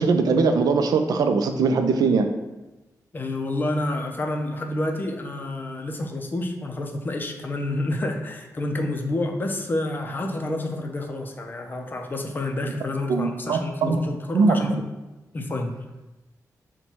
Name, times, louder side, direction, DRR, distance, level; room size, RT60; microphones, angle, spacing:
voice 1, 0.0-2.3 13.1-14.0 14.3-14.8, right 4 dB, 75° right, 7 dB, 0.4 m, -21 dB
voice 2, 3.1-14.7 15.3-15.7, left 2 dB, 30° left, 3 dB, 0.4 m, -29 dB
4.4 x 2.2 x 4.2 m, 1.1 s
wide cardioid pair, 130°, 7 cm